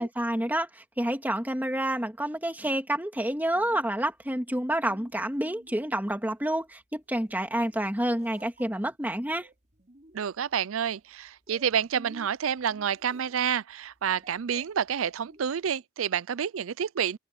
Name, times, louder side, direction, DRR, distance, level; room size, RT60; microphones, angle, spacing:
voice 1, 0.0-9.5, right 1 dB, 10° right, 2.1 m, -29 dB
sound 1, 3.2-15.7, right 2 dB, 35° right, 5.1 m, -55 dB
voice 2, 10.1-17.2, right 8 dB, 90° right, 0.5 m, -29 dB
open air
head